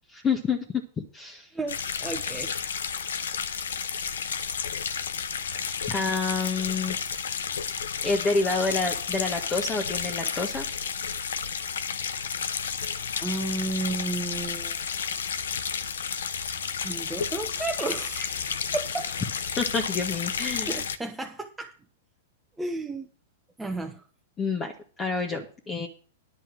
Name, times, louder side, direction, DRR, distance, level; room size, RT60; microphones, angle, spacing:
voice 1, 0.2-0.6 1.1-1.5 5.9-7.0 8.0-10.6 19.6-20.8 24.4-24.7 25.0-25.9, left 4 dB, 20° left, 3 dB, 1.7 m, -28 dB
voice 2, 1.5-2.6 13.2-14.8 16.8-19.1 20.6-21.8 22.6-23.1 23.6-24.0, right 2 dB, 10° right, 3 dB, 1.1 m, -33 dB
sound 1, 1.7-21.0, left 6 dB, 80° left, 0.9 m, -32 dB
10.5 x 5.5 x 7.6 m, 0.39 s
hypercardioid pair, 115°, 0 cm